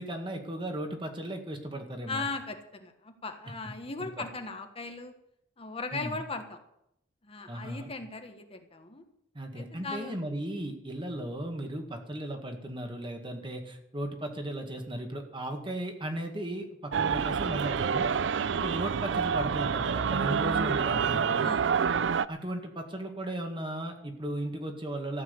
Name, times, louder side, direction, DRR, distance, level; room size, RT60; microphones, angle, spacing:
voice 1, 0.0-2.3 4.0-4.2 5.9-6.2 7.5-7.9 9.3-18.1 18.5-21.5 22.3-25.2, right 1 dB, 25° right, 4 dB, 2.0 m, -36 dB
voice 2, 2.1-5.1 5.6-6.6 7.2-9.0 9.5-10.1 18.4-18.6 21.4-21.7, left 3 dB, 30° left, 5 dB, 1.4 m, -38 dB
sound 1, 16.9-22.3, right 6 dB, 70° right, 0.5 m, -27 dB
14.5 x 7.6 x 9.5 m, 0.79 s
head